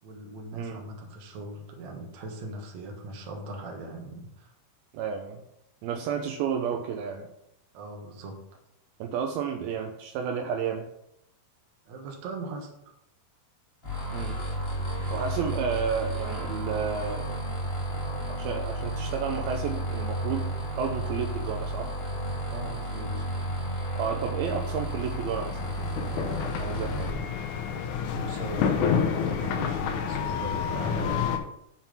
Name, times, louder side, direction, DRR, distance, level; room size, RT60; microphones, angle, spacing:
voice 1, 0.0-4.5 7.7-8.4 11.9-12.7 22.5-23.3 28.1-31.2, right 2 dB, 60° right, 1 dB, 2.2 m, -39 dB
voice 2, 0.5-0.8 4.9-5.4 5.8-7.3 9.0-10.9 14.1-14.4 15.1-17.4 18.3-22.0 24.0-25.7 26.1-27.2, right 7 dB, 80° right, 4 dB, 2.4 m, -32 dB
sound 1, 13.8-27.1, right 1 dB, 35° left, 0.9 m, -32 dB
sound 2, 24.7-31.4, left 7 dB, 80° left, 1.8 m, -29 dB
7.2 x 5.8 x 5.8 m, 0.79 s
omnidirectional pair, 4.5 m